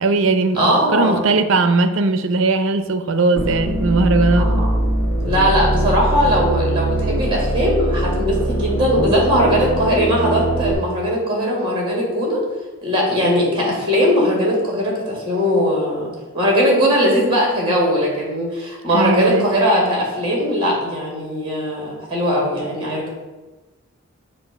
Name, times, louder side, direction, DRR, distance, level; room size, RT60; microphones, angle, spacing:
voice 1, 0.0-4.5 18.9-19.5, right 3 dB, 60° right, 8 dB, 0.5 m, -18 dB
voice 2, 0.5-1.2 4.4-4.9 5.2-12.4 12.8-23.1, equal, 25° right, -2 dB, 1.9 m, -19 dB
sound 1, 3.4-10.7, right 1 dB, 65° left, 1.3 m, -21 dB
7.6 x 2.6 x 5.7 m, 1.2 s
head